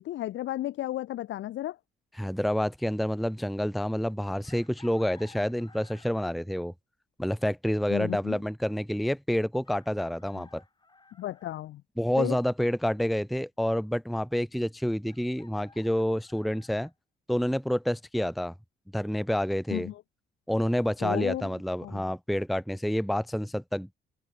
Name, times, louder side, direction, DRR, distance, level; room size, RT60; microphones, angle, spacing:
voice 1, 0.0-1.8 7.9-8.4 10.3-10.4 11.2-11.8 12.2-12.4 19.7-20.0 21.0-21.5 21.8-22.1, left 14 dB, 70° left, 0.6 m, -33 dB
voice 2, 2.2-6.7 7.2-10.6 12.0-16.9 17.3-18.5 18.9-19.9 20.5-24.0, equal, ahead, 0.6 m, -28 dB
Chicken rooster, 4.4-6.4 8.1-8.2 9.6-11.6 15.0-16.9, left 3 dB, 20° left, 4.8 m, -56 dB
open air
cardioid pair, 90°, 20 cm